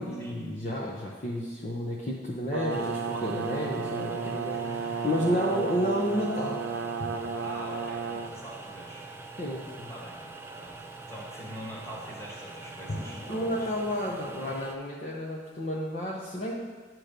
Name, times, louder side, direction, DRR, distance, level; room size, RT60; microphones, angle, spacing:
voice 1, 0.0-4.6 5.0-6.6 9.4-9.9 13.3-16.5, equal, 40° left, -4 dB, 0.8 m, -31 dB
Brass instrument, 2.5-8.3, right 5 dB, 80° right, 0.5 m, -33 dB
sound 1, 2.7-14.8, right 3 dB, 15° right, 0.4 m, -44 dB
voice 2, 4.5-5.0 7.4-9.0 9.9-10.2 10.6-13.7, equal, 15° left, -3 dB, 1.4 m, -44 dB
sound 2, 7.0-9.6 12.9-13.8, left 1 dB, 75° left, 1.1 m, -44 dB
8.9 x 3.1 x 6.6 m, 1.5 s
head